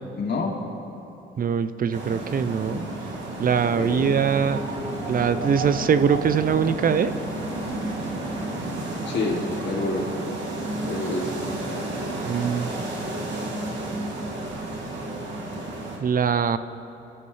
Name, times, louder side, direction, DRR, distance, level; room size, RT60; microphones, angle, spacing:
voice 1, 0.1-0.6 2.6-2.9 3.8-4.2 9.0-10.1 10.9-11.5, left 3 dB, 60° left, -1 dB, 2.8 m, -28 dB
voice 2, 1.4-2.9 3.4-4.6 5.1-7.1 12.2-12.7 16.0-16.6, right 7 dB, 45° right, 12 dB, 0.6 m, -22 dB
sound 1, 1.9-16.0, right 2 dB, 70° right, 2.7 m, -31 dB
24.5 x 14.0 x 3.3 m, 3.0 s
cardioid pair, 90°, 20 cm